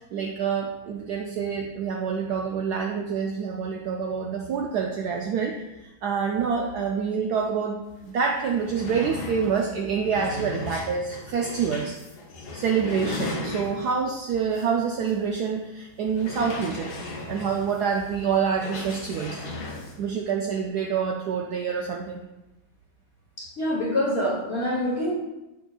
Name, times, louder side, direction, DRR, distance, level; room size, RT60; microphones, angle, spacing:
voice 1, 0.0-11.9 12.5-16.9 17.3-19.4 20.0-22.2, right 6 dB, 75° right, 2 dB, 0.9 m, -27 dB
sound 1, 8.0-8.1 8.3-14.0 14.5-14.7 15.1-15.2 16.1-20.0, left 2 dB, 60° left, 1.4 m, -36 dB
voice 2, 23.4-25.1, left 1 dB, 40° left, -4 dB, 1.0 m, -26 dB
6.5 x 6.1 x 2.4 m, 1.0 s
omnidirectional pair, 2.2 m